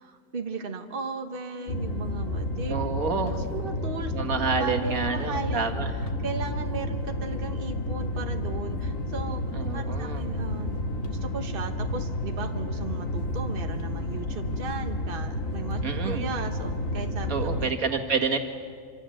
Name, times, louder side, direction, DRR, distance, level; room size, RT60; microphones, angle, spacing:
voice 1, 0.0-2.7 3.1-9.4 9.7-10.8 11.1-18.0, right 4 dB, 40° right, 5 dB, 1.6 m, -37 dB
sound 1, 1.7-17.7, left 1 dB, 70° left, 2.3 m, -31 dB
voice 2, 2.7-3.4 4.1-5.9 9.5-10.2 15.8-16.2 17.3-18.4, right 5 dB, 75° right, 4 dB, 2.4 m, -28 dB
26.0 x 25.5 x 7.8 m, 2.2 s
omnidirectional pair, 1.5 m